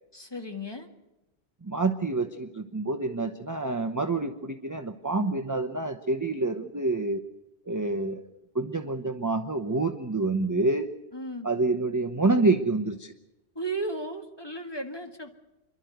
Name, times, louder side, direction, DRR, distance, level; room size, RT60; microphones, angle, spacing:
voice 1, 0.1-0.9 11.1-11.5 13.6-15.3, right 1 dB, 20° left, 4 dB, 1.8 m, -35 dB
voice 2, 1.6-7.2 7.6-8.2 8.5-10.9 11.4-13.1, right 3 dB, 20° right, 5 dB, 0.8 m, -27 dB
27.5 x 12.0 x 9.3 m, 0.96 s
omnidirectional pair, 1.3 m